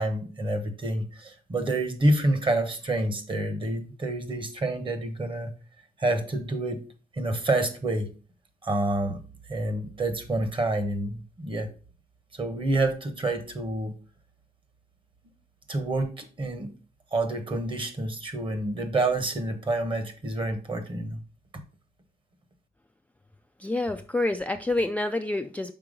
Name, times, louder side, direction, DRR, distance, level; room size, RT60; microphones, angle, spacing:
voice 1, 0.0-5.5 6.0-6.8 7.1-8.1 8.6-9.2 9.5-11.7 12.3-13.9 15.7-16.7 17.1-21.2, right 2 dB, 30° right, 8 dB, 1.2 m, -28 dB
voice 2, 23.6-25.7, left 2 dB, 10° left, 6 dB, 0.3 m, -27 dB
5.9 x 4.6 x 5.1 m, 0.37 s
wide cardioid pair, 135°, 16 cm